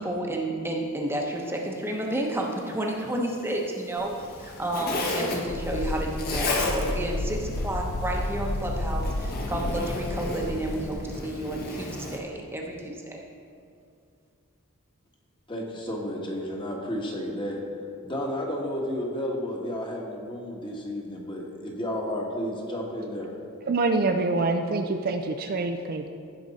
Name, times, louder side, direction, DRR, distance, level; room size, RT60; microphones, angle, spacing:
voice 1, 0.0-13.2, right 1 dB, 10° right, 0 dB, 0.9 m, -31 dB
Zipper (clothing), 4.0-12.2, left 2 dB, 45° left, 1.2 m, -34 dB
sound 1, 5.5-10.9, left 2 dB, 70° left, 0.6 m, -31 dB
voice 2, 15.5-17.6 18.0-23.3, equal, 20° left, -1 dB, 1.3 m, -32 dB
voice 3, 23.7-26.1, right 3 dB, 45° right, 6 dB, 0.4 m, -26 dB
15.5 x 5.2 x 4.1 m, 2.3 s
head